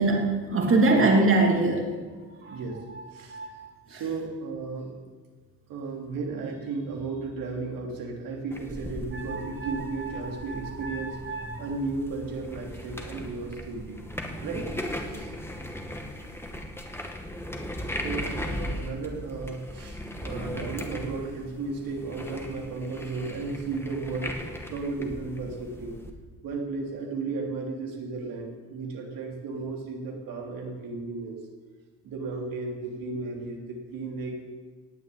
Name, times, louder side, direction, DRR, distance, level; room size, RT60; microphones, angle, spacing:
voice 1, 0.0-1.9 2.4-2.6 2.9-3.0 3.3-3.6 3.9-4.0 9.1-11.7, right 2 dB, 40° right, 1 dB, 2.8 m, -25 dB
voice 2, 2.5-2.8 3.1-3.4 3.9-5.0 5.7-11.2 11.6-14.0 14.4-14.7 15.1-15.3 18.0-26.0 26.4-31.4 32.0-34.4, right 3 dB, 80° right, 0 dB, 3.2 m, -34 dB
sound 1, 8.5-26.1, left 1 dB, 5° left, 2.1 m, -38 dB
19.0 x 7.3 x 8.6 m, 1.4 s
cardioid pair, 95°, 34 cm